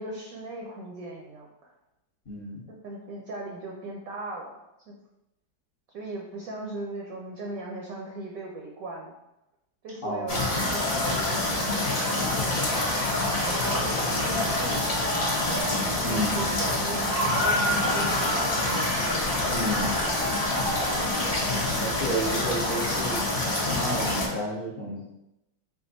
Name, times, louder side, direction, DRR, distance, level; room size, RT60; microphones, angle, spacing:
voice 1, 0.0-1.7 2.7-4.5 4.9-5.0 5.9-9.1 9.8-12.0 13.5-14.9 16.0-18.5, right 2 dB, 65° right, -1 dB, 0.9 m, -38 dB
voice 2, 2.3-2.6 10.0-10.5 16.0-16.4 19.5-20.0 21.8-23.2 23.7-25.0, equal, 50° left, -7 dB, 0.6 m, -31 dB
sound 1, 10.3-24.3, left 1 dB, 90° left, 0.3 m, -26 dB
4.3 x 2.5 x 3.9 m, 0.90 s
omnidirectional pair, 2.0 m